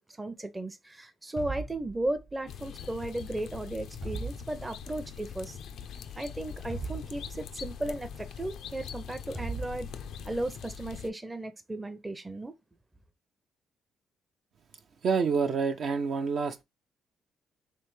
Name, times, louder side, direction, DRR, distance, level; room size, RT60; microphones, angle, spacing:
voice 1, 0.0-5.6 6.1-9.9 10.2-12.5, right 1 dB, 15° right, 0.6 m, -35 dB
sound 1, 1.4-2.5 4.0-5.0 6.7-7.8 9.4-10.3, right 4 dB, 35° right, 1.1 m, -39 dB
sound 2, 2.5-11.1, left 8 dB, 75° left, 0.4 m, -42 dB
voice 2, 15.0-16.6, right 5 dB, 60° right, 0.7 m, -27 dB
3.6 x 3.3 x 3.2 m
cardioid pair, 90°, 0 cm